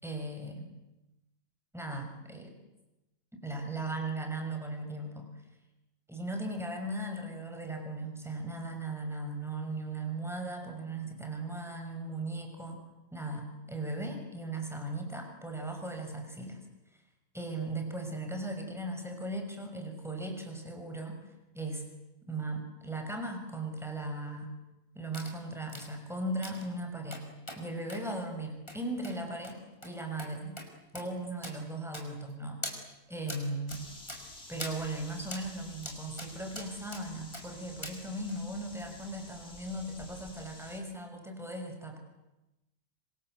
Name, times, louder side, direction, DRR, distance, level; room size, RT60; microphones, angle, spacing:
voice 1, 0.0-0.7 1.7-2.5 3.3-5.3 6.1-12.8 13.1-16.6 16.9-17.0 17.3-21.8 22.3-24.5 24.9-27.2 27.5-30.6 30.9-32.6 33.1-33.9 34.5-42.0, right 2 dB, ahead, 4 dB, 5.9 m, -38 dB
sound 1, 25.1-25.3 25.7-25.9 26.4-26.7 27.1-27.6 27.9-28.0 28.7-28.8 29.0-29.2 29.4-29.6 29.8-29.9 30.2-30.3 30.6-30.7 31.0-31.1 31.4-31.6 31.9-32.3 32.6-32.8 33.3-33.4 33.7-33.8 34.1-34.2 34.6-34.8 35.3-35.4 35.8-36.3 36.6-37.0 37.3-37.5 37.8-38.0 38.3-38.4, left 1 dB, 15° left, 5.0 m, -42 dB
sound 2, 33.7-40.8, left 2 dB, 40° left, 3.6 m, -51 dB
26.5 x 26.0 x 7.9 m, 0.98 s
omnidirectional pair, 1.6 m